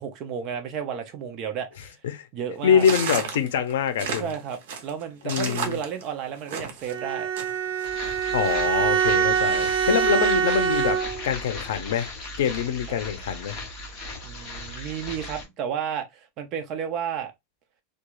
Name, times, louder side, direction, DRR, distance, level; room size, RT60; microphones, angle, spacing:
voice 1, 0.0-2.0 2.3-2.9 4.2-7.3 12.9-13.0 14.2-17.3, right 8 dB, 30° right, 0.5 m, -32 dB
voice 2, 2.6-4.3 5.2-5.8 8.3-11.0 11.2-13.6, left 8 dB, 80° left, 0.5 m, -24 dB
sound 1, 2.8-6.9 7.4-7.9, right 6 dB, 70° right, 0.7 m, -32 dB
Bowed string instrument, 6.9-11.4, right 8 dB, 45° right, 1.1 m, -24 dB
sound 2, 7.8-15.5, left 2 dB, 30° left, 0.7 m, -37 dB
2.3 x 2.3 x 2.9 m
supercardioid pair, 175°, 0 cm